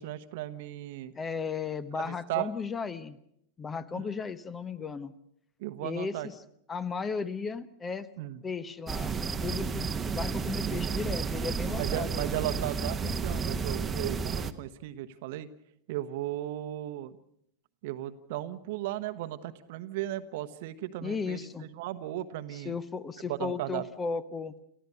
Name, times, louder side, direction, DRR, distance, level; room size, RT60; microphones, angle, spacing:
voice 1, 0.0-1.1 1.9-2.5 4.0-4.1 5.6-6.3 8.2-8.4 11.8-15.5 15.9-17.2 17.8-22.7 23.3-23.9, right 14 dB, 50° right, 12 dB, 1.1 m, -36 dB
voice 2, 1.1-3.2 3.6-5.1 5.8-6.3 6.7-8.1 8.4-12.4 21.0-21.7 22.5-24.5, left 5 dB, 20° left, 16 dB, 0.9 m, -35 dB
sound 1, 8.9-14.5, right 5 dB, 20° right, 1.1 m, -32 dB
29.5 x 15.0 x 6.7 m, 0.73 s
figure-of-eight pair, 90°, 0 cm